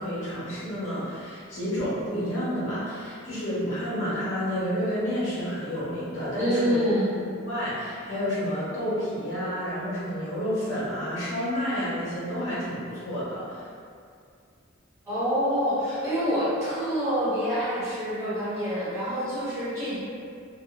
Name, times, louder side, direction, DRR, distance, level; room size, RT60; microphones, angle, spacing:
voice 1, 0.0-6.7 7.4-13.6, equal, 75° left, -12 dB, 1.2 m, -30 dB
voice 2, 6.4-7.1 15.1-20.0, equal, 15° right, -13 dB, 0.9 m, -26 dB
2.8 x 2.1 x 2.2 m, 2.3 s
head